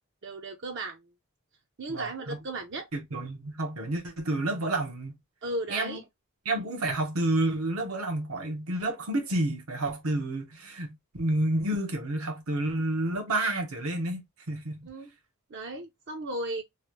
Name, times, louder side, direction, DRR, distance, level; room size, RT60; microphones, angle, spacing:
voice 1, 0.2-1.1 1.8-2.9 5.4-6.0 14.9-15.1 15.5-16.6, right 1 dB, 55° right, 0.6 m, -35 dB
voice 2, 1.9-2.4 2.9-5.2 5.7-6.0 6.4-14.2 14.5-14.8, right 1 dB, 85° right, 1.1 m, -30 dB
3.1 x 2.5 x 3.0 m
head